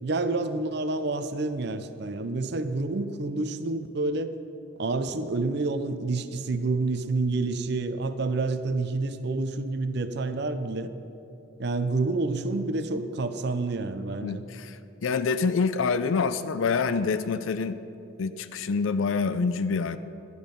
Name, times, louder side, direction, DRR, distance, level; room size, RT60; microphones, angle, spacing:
voice 1, 0.0-4.3 4.8-10.9 11.6-14.4, right 3 dB, 55° right, 11 dB, 0.5 m, -28 dB
voice 2, 14.2-17.8 18.2-20.0, left 5 dB, 75° left, 12 dB, 0.5 m, -26 dB
11.5 x 11.0 x 5.2 m, 2.9 s
head